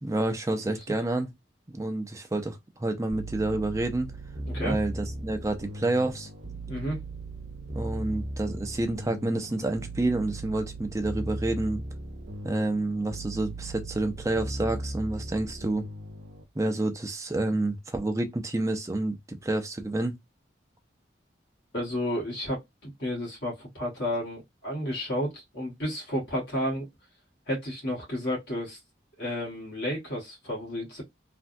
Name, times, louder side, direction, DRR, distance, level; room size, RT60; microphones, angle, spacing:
voice 1, 0.0-1.3 1.7-4.1 4.6-6.3 7.7-11.8 12.4-15.9 16.6-20.2, right 2 dB, 15° right, 0.4 m, -29 dB
sound 1, 3.1-16.4, right 1 dB, 80° right, 0.8 m, -37 dB
voice 2, 4.4-4.8 6.7-7.0 21.7-26.9 27.5-28.8 29.2-31.0, equal, 70° left, 1.4 m, -32 dB
3.3 x 2.2 x 2.6 m
head